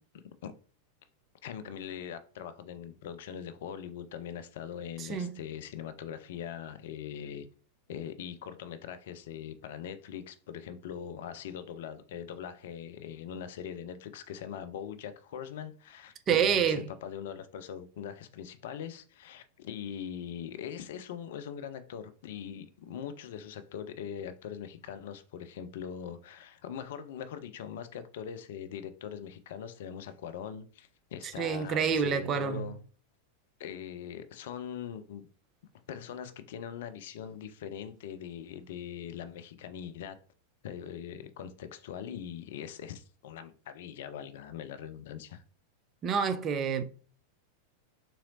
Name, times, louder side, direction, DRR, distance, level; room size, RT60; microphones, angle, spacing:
voice 1, 1.4-7.5 7.9-32.8 33.6-35.3 35.9-40.2 40.6-45.4, left 8 dB, 55° left, 0.4 m, -41 dB
voice 2, 16.3-16.8 31.4-32.7 46.0-46.8, right 7 dB, 30° right, 0.4 m, -27 dB
3.8 x 2.9 x 2.7 m
figure-of-eight pair, 90°, 0 cm